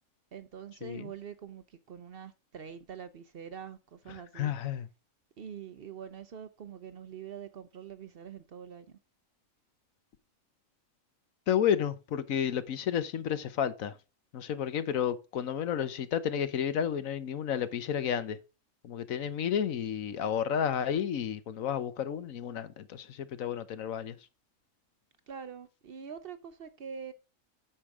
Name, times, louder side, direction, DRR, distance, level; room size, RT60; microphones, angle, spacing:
voice 1, 0.3-4.5 5.4-9.0 25.3-27.1, right 7 dB, 55° right, 0.7 m, -44 dB
voice 2, 4.1-4.9 11.5-14.0 14.3-18.4 18.8-24.2, left 9 dB, 80° left, 1.3 m, -31 dB
8.9 x 6.6 x 3.6 m
omnidirectional pair, 1.4 m